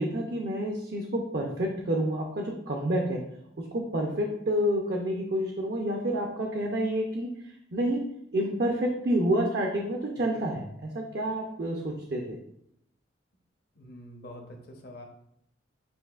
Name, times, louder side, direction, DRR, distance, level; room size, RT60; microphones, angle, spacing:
voice 1, 0.0-3.2 3.6-7.3 7.7-8.1 8.3-12.4, right 1 dB, 55° right, 1 dB, 0.5 m, -29 dB
voice 2, 13.8-15.1, left 1 dB, 55° left, 2 dB, 0.8 m, -46 dB
7.8 x 2.7 x 2.4 m, 0.74 s
head